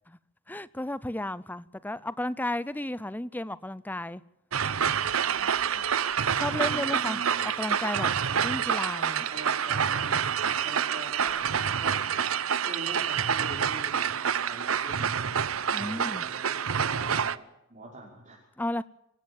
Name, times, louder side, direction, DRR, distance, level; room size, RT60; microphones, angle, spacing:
voice 1, 0.5-4.2 6.4-8.1 8.4-9.3 15.7-16.2 18.6-18.8, left 1 dB, 10° left, 0.7 m, -33 dB
sound 1, 4.5-17.4, right 7 dB, 75° right, 0.8 m, -27 dB
voice 2, 5.2-5.9 6.5-7.6 9.1-11.5 11.8-12.0 12.6-15.2 15.7-18.4, right 1 dB, 35° right, 5.7 m, -44 dB
25.0 x 15.5 x 7.3 m
head